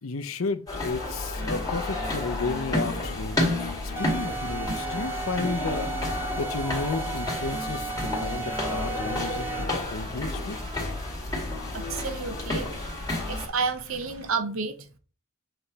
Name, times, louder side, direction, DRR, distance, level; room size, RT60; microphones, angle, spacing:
voice 1, 0.0-10.6, left 4 dB, 70° left, 0.7 m, -33 dB
sound 1, 0.7-13.5, left 2 dB, 15° left, 2.1 m, -31 dB
sound 2, 1.9-14.3, equal, 90° right, 1.8 m, -47 dB
sound 3, 4.0-9.9, right 5 dB, 10° right, 0.5 m, -35 dB
voice 2, 11.7-15.0, right 5 dB, 70° right, 0.8 m, -31 dB
7.9 x 3.4 x 4.0 m
head